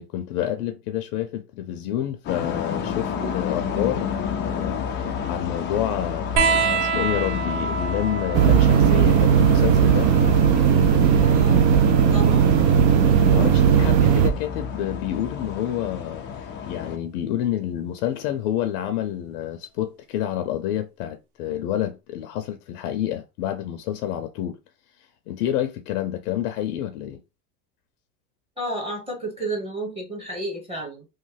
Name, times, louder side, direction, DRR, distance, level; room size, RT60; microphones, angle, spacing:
voice 1, 0.0-4.8 5.0-10.1 13.2-16.2 16.7-24.6 25.3-27.2, left 11 dB, 65° left, 0.7 m, -28 dB
sound 1, 2.2-17.0, left 6 dB, 25° left, 0.4 m, -31 dB
sound 2, 6.4-13.4 14.8-15.6 16.9-17.0, right 5 dB, 60° right, 0.8 m, -29 dB
sound 3, 8.3-14.3, right 8 dB, 40° right, 0.4 m, -17 dB
voice 2, 11.2-11.7 12.1-12.6 28.6-31.1, right 1 dB, 10° right, 1.1 m, -31 dB
3.1 x 2.1 x 3.2 m
supercardioid pair, 115°, 49 cm